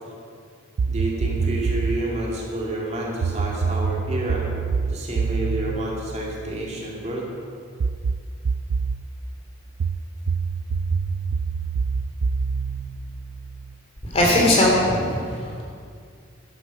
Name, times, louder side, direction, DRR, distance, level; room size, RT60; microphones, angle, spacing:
sound 1, 0.8-2.1 3.2-6.9 7.8-9.0 9.8-13.7, right 5 dB, 85° right, 0.4 m, -26 dB
voice 1, 0.9-4.4 4.9-7.3, right 1 dB, 35° right, -3 dB, 2.4 m, -29 dB
voice 2, 14.1-15.6, left 1 dB, 30° left, -3 dB, 3.1 m, -19 dB
11.5 x 11.0 x 6.2 m, 2.3 s
head